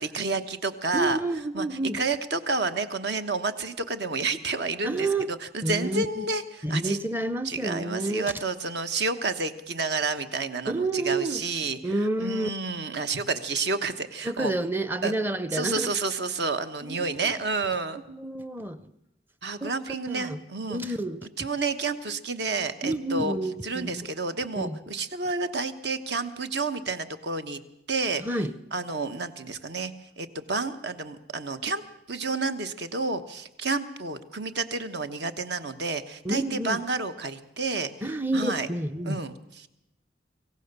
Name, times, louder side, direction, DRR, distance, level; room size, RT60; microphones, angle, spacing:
voice 1, 0.0-1.2 1.5-1.7 1.9-7.0 7.4-14.5 15.0-15.1 15.5-18.0 19.4-20.8 21.4-23.3 23.6-27.6 27.9-28.2 28.7-31.8 32.1-37.9 38.3-38.7 39.0-39.7, right 3 dB, 60° right, 9 dB, 1.2 m, -30 dB
voice 2, 0.9-2.0 4.8-5.3 5.6-6.3 6.6-8.3 10.7-11.4 11.8-12.5 14.2-15.9 16.8-17.3 18.1-18.9 19.6-19.7 20.1-20.4 20.7-21.3 22.8-24.1 24.5-24.8 28.2-28.5 36.2-36.8 38.0-39.2, right 2 dB, 10° right, 14 dB, 0.6 m, -29 dB
25.0 x 15.5 x 6.8 m, 0.86 s
head